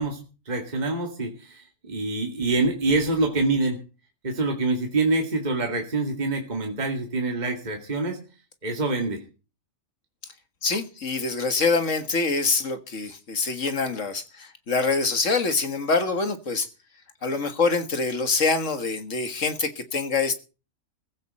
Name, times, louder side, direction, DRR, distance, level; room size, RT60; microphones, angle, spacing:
voice 1, 0.0-3.8 4.2-8.2 8.6-9.2, right 2 dB, 30° right, 2.2 m, -26 dB
voice 2, 10.6-16.7 17.2-20.3, left 4 dB, 55° left, 2.0 m, -25 dB
16.0 x 15.5 x 4.3 m
omnidirectional pair, 1.6 m